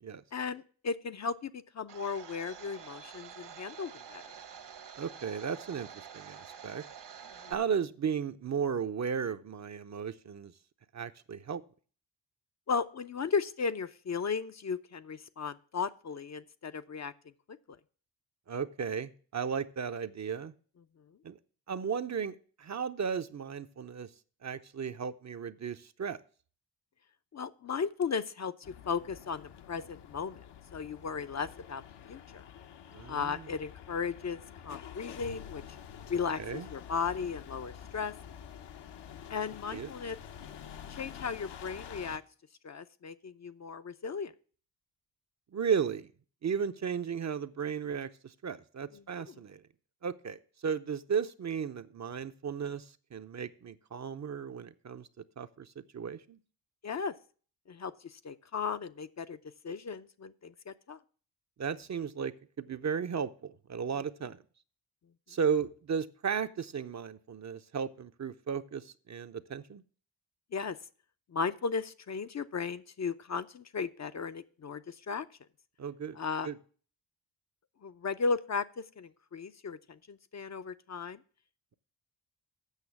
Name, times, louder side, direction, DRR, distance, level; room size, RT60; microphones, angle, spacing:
voice 1, 0.3-4.3 7.4-7.5 12.7-17.1 27.3-30.5 30.7-31.8 32.1-32.4 33.1-34.4 34.6-35.6 36.1-38.1 39.3-40.2 40.9-42.2 42.6-44.3 48.9-49.4 56.8-57.1 57.7-59.4 59.6-61.0 70.5-70.8 71.3-75.3 76.2-76.5 77.8-81.2, left 5 dB, 35° left, 11 dB, 0.6 m, -36 dB
Domestic sounds home sounds, 1.9-7.5, right 7 dB, 65° right, 1.4 m, -48 dB
voice 2, 5.0-6.8 7.5-10.5 10.9-11.6 18.5-20.5 21.2-21.4 21.7-24.1 24.4-26.2 32.9-33.5 36.4-36.7 39.7-39.9 45.5-46.1 46.4-49.6 50.0-55.7 55.9-56.4 61.6-64.4 65.3-69.8 75.8-76.2 76.4-76.6, right 7 dB, 40° right, 10 dB, 0.6 m, -35 dB
sound 1, 28.6-42.2, left 8 dB, 65° left, 0.9 m, -48 dB
8.2 x 6.1 x 7.1 m, 0.42 s
supercardioid pair, 55°, 45 cm